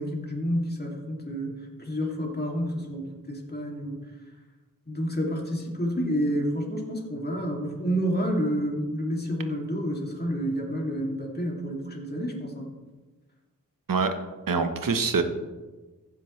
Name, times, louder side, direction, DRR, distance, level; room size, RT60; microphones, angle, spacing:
voice 1, 0.0-1.5 1.8-4.0 4.9-12.7, equal, 30° left, -1 dB, 2.6 m, -29 dB
voice 2, 14.5-15.2, right 5 dB, 75° right, 8 dB, 1.0 m, -24 dB
15.0 x 7.5 x 3.2 m, 1.2 s
cardioid pair, 55°, 33 cm